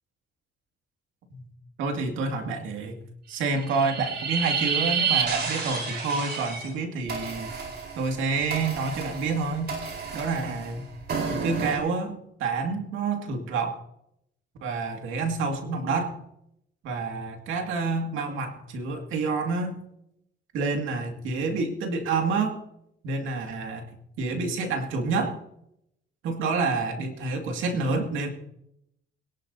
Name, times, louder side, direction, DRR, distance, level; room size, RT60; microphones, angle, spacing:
voice 1, 1.8-2.9 3.3-7.7 8.0-9.7 10.1-10.9 11.3-13.8 14.6-16.2 16.8-19.8 20.5-22.6 23.0-23.9 24.2-25.4 26.2-28.3, right 4 dB, 90° right, 4 dB, 2.2 m, -28 dB
sound 1, 3.5-6.7 7.1-11.8, right 6 dB, 55° right, 4.1 m, -30 dB
21.5 x 11.5 x 2.8 m, 0.77 s
cardioid pair, 90°, 20 cm